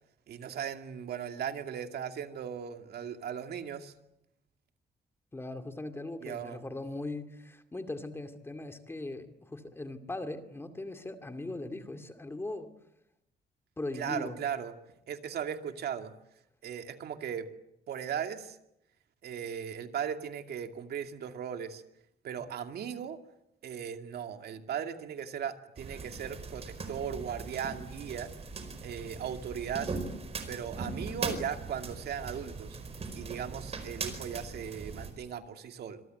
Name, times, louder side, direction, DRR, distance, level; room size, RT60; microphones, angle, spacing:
voice 1, 0.3-3.9 6.2-6.6 13.9-14.7 15.1-16.1 16.6-17.5 17.9-18.6 19.2-21.8 22.2-23.2 23.6-28.3 28.8-29.9 30.5-32.8 33.1-36.0, right 8 dB, 80° right, 6 dB, 2.4 m, -37 dB
voice 2, 5.3-12.7 13.8-14.4, left 2 dB, 15° left, 7 dB, 2.3 m, -39 dB
sound 1, 25.8-35.1, right 4 dB, 40° right, 4.8 m, -40 dB
26.5 x 23.5 x 7.8 m, 0.82 s
wide cardioid pair, 155°, 16 cm